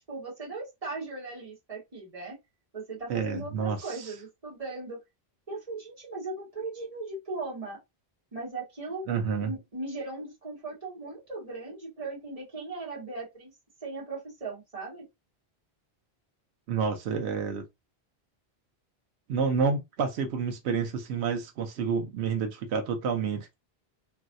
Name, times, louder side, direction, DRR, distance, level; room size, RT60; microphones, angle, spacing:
voice 1, 0.1-2.4 2.7-5.0 5.5-7.8 8.3-9.1 9.4-13.5 13.8-15.0, right 3 dB, 35° right, 1.6 m, -38 dB
voice 2, 3.1-4.1 9.1-9.5 16.7-17.6 19.3-23.6, right 5 dB, 90° right, 0.9 m, -29 dB
3.1 x 2.7 x 2.5 m
omnidirectional pair, 1.1 m